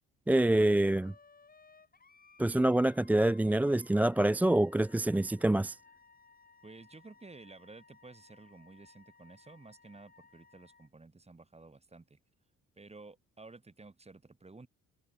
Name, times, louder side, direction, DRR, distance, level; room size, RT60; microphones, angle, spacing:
voice 1, 0.3-1.1 2.4-5.8, right 1 dB, 5° right, 0.3 m, -26 dB
Wind instrument woodwind instrument, 1.0-10.9, left 4 dB, 30° left, 5.6 m, -61 dB
voice 2, 6.6-12.2 12.7-14.7, right 3 dB, 20° right, 5.0 m, -53 dB
cardioid pair, 90°, 30 cm